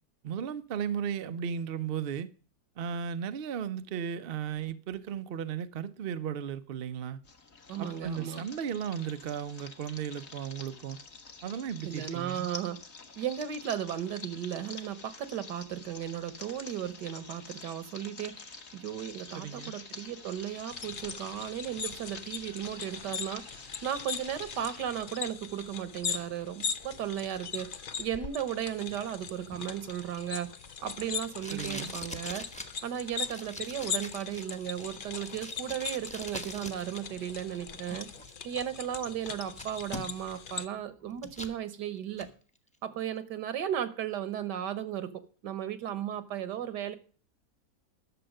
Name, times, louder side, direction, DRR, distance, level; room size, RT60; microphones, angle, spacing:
voice 1, 0.2-2.3 2.8-7.2 7.8-11.0 11.4-12.5 19.3-19.8 31.5-31.9, right 8 dB, 65° right, 0.5 m, -35 dB
sound 1, 7.2-24.8, left 4 dB, 40° left, 1.4 m, -47 dB
voice 2, 7.7-8.4 11.8-12.8 13.2-27.7 28.0-30.5 30.8-32.5 32.8-38.1 38.4-42.3 42.8-45.1 45.4-47.0, right 10 dB, 80° right, 1.7 m, -35 dB
sound 2, 20.7-40.7, left 6 dB, 80° left, 0.4 m, -40 dB
Packing tape duct tape, 29.5-37.0 37.3-38.3 38.8-38.9 39.2-40.4 40.7-41.6 42.0-42.3, equal, 5° left, 0.8 m, -44 dB
12.0 x 6.9 x 6.4 m
omnidirectional pair, 1.8 m